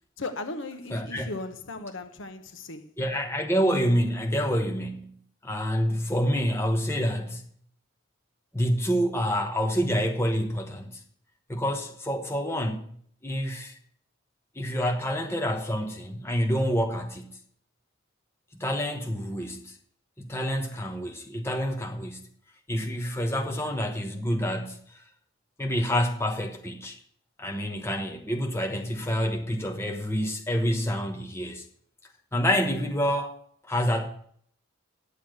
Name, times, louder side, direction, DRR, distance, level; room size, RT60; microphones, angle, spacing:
voice 1, 0.2-2.9, left 2 dB, 65° left, 1.0 m, -37 dB
voice 2, 0.9-1.3 3.0-5.2 5.4-7.5 8.5-11.0 11.5-12.9 13.2-13.7 14.5-17.3 18.6-19.7 20.2-22.3 22.7-25.0 25.6-27.0 27.4-31.6 32.3-33.4 33.7-34.1, equal, 10° left, 1.1 m, -27 dB
10.0 x 7.1 x 7.7 m
head